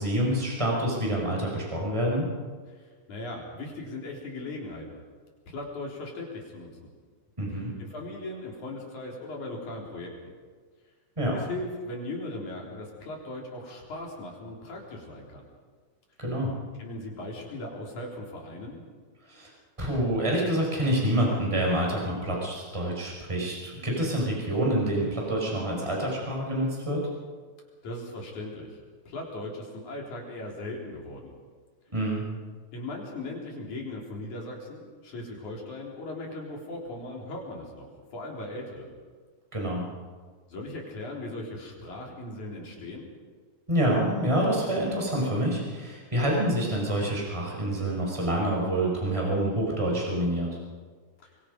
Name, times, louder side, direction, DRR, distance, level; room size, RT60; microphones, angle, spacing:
voice 1, 0.0-2.3 7.4-7.7 11.2-11.4 16.2-16.5 19.3-19.5 19.8-27.0 31.9-32.2 39.5-39.9 43.7-50.5, right 1 dB, 10° right, -2 dB, 5.2 m, -27 dB
voice 2, 2.8-5.0 5.5-6.9 7.8-10.3 11.3-15.5 16.8-18.8 27.8-28.8 29.1-31.4 32.7-38.9 40.5-43.1 51.2-51.3, left 2 dB, 75° left, -1 dB, 5.2 m, -38 dB
24.5 x 23.5 x 5.3 m, 1.5 s
omnidirectional pair, 3.4 m